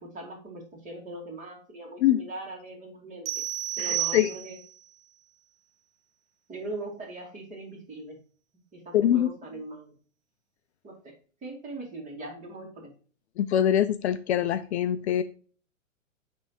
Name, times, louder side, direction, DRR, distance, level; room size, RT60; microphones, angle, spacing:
voice 1, 0.0-3.3 3.8-4.6 6.5-8.2 8.7-9.9 10.8-11.1 11.4-12.9, right 2 dB, 20° right, -1 dB, 2.6 m, -40 dB
sound 1, 3.3-4.8, right 14 dB, 45° right, 0.6 m, -31 dB
voice 2, 3.8-4.3 8.9-9.3 13.4-15.2, left 11 dB, 55° left, 12 dB, 0.5 m, -24 dB
9.7 x 3.5 x 2.9 m, 0.40 s
hypercardioid pair, 120°, 40 cm